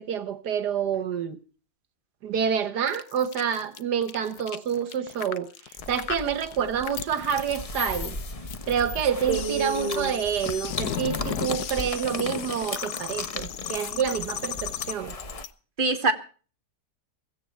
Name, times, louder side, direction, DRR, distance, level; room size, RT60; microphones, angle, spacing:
voice 1, 0.0-1.4 2.2-5.5 5.9-8.2 8.7-15.1, right 8 dB, 80° right, 1.7 m, -28 dB
sound 1, 2.9-15.5, left 10 dB, 70° left, 1.4 m, -36 dB
sound 2, 5.8-15.5, left 2 dB, 25° left, 1.0 m, -37 dB
voice 2, 9.3-10.1 15.8-16.1, right 3 dB, 30° right, 2.1 m, -25 dB
16.5 x 16.0 x 4.5 m
omnidirectional pair, 1.8 m